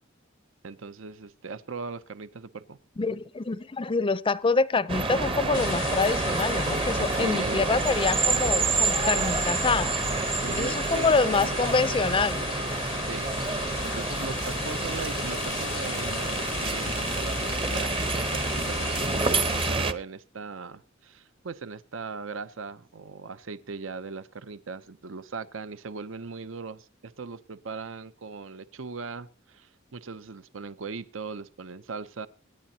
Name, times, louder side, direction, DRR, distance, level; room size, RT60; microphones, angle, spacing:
voice 1, 0.6-2.8 7.1-7.7 10.4-11.6 13.0-32.3, right 4 dB, 70° right, 0.7 m, -39 dB
voice 2, 3.0-10.0 10.6-12.5, left 4 dB, 25° left, 0.5 m, -26 dB
sound 1, 4.9-19.9, right 3 dB, 25° right, 0.9 m, -28 dB
sound 2, 5.5-19.7, left 9 dB, 65° left, 0.6 m, -37 dB
26.0 x 10.0 x 2.8 m
head